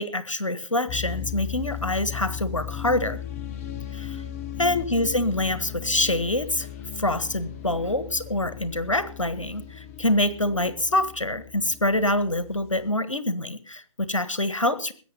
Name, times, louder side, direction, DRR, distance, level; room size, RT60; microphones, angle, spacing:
voice 1, 0.0-3.2 3.9-4.2 4.6-6.7 7.0-14.9, left 1 dB, 80° left, 14 dB, 1.5 m, -25 dB
sound 1, 0.9-12.9, left 10 dB, 30° left, 0.8 m, -37 dB
20.5 x 9.0 x 5.4 m, 0.40 s
figure-of-eight pair, 130°, 16 cm